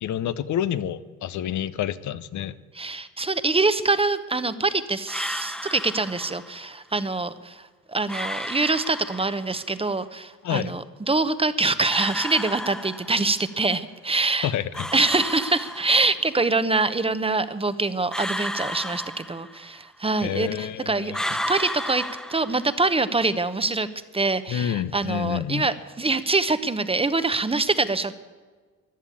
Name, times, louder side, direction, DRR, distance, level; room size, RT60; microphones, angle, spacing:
voice 1, 0.0-2.6 10.4-10.7 14.4-14.9 20.2-21.2 24.5-25.6, left 10 dB, 75° left, 14 dB, 0.8 m, -28 dB
voice 2, 2.7-7.6 7.9-14.5 14.9-22.0 22.3-23.9 24.1-28.1, right 3 dB, 20° right, 13 dB, 0.9 m, -24 dB
sound 1, 5.1-6.6 8.1-9.6 11.9-13.5 14.7-16.3 18.1-19.9 21.1-23.0, equal, ahead, 1.0 m, -33 dB
15.0 x 11.0 x 8.6 m, 1.4 s
cardioid pair, 90°, 30 cm